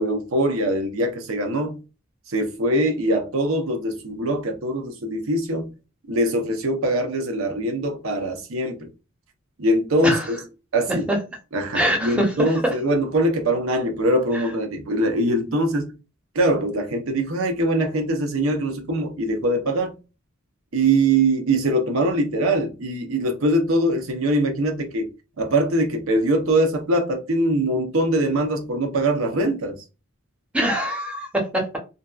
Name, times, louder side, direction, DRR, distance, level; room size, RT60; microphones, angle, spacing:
voice 1, 0.0-1.8 2.3-5.7 6.1-8.9 9.6-10.4 10.7-11.1 11.5-15.9 16.3-19.9 20.7-25.1 25.4-29.8, right 1 dB, 80° right, 0.7 m, -22 dB
voice 2, 11.7-12.7 14.3-14.4 30.5-31.8, equal, 5° right, 0.7 m, -23 dB
2.6 x 2.3 x 2.3 m
head